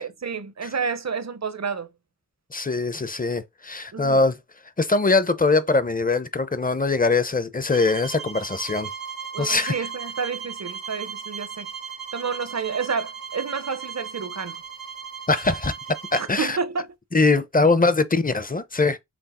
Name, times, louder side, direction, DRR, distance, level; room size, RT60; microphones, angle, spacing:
voice 1, 0.0-1.9 3.9-4.2 9.3-11.7 12.1-14.6 16.2-16.9, right 5 dB, 50° right, 0.6 m, -30 dB
voice 2, 2.5-4.4 4.8-8.9 9.4-9.7 15.3-15.7 16.1-16.6 17.1-19.0, left 3 dB, 25° left, 0.6 m, -22 dB
sound 1, 7.7-16.3, right 6 dB, 85° right, 1.1 m, -37 dB
5.9 x 2.0 x 4.2 m
wide cardioid pair, 50°, 34 cm